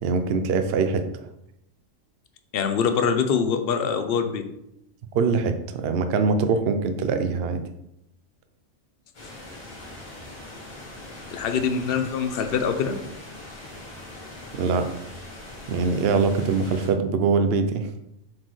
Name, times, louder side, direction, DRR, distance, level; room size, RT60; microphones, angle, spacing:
voice 1, 0.0-1.0 5.1-7.6 14.5-14.9 15.7-17.9, right 4 dB, 60° right, 8 dB, 0.7 m, -23 dB
voice 2, 2.5-4.4 11.3-13.0, left 6 dB, 55° left, 7 dB, 0.8 m, -24 dB
sound 1, 9.1-16.9, left 1 dB, 80° left, 2.8 m, -41 dB
7.4 x 4.3 x 3.1 m, 0.81 s
omnidirectional pair, 1.4 m